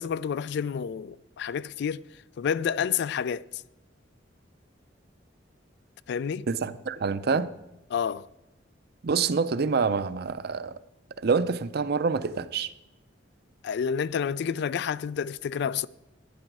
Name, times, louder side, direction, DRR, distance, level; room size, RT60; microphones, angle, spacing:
voice 1, 0.0-2.0 2.4-3.6 6.1-6.5 7.9-8.3 13.6-15.9, left 7 dB, 65° left, 0.3 m, -29 dB
voice 2, 6.5-7.5 9.0-10.8 11.2-12.7, right 5 dB, 55° right, 0.5 m, -26 dB
11.5 x 9.8 x 4.6 m
head